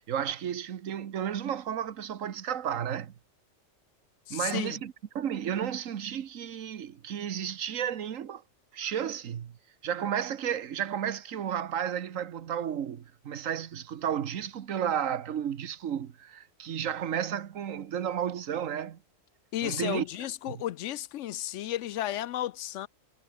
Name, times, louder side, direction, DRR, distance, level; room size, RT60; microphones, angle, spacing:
voice 1, 0.0-3.1 4.3-8.4 8.7-9.6 9.8-19.0 19.6-20.0 20.4-20.6, right 9 dB, 85° right, 1.4 m, -33 dB
voice 2, 4.3-4.8 19.5-22.9, left 13 dB, 70° left, 0.9 m, -33 dB
omnidirectional pair, 1.3 m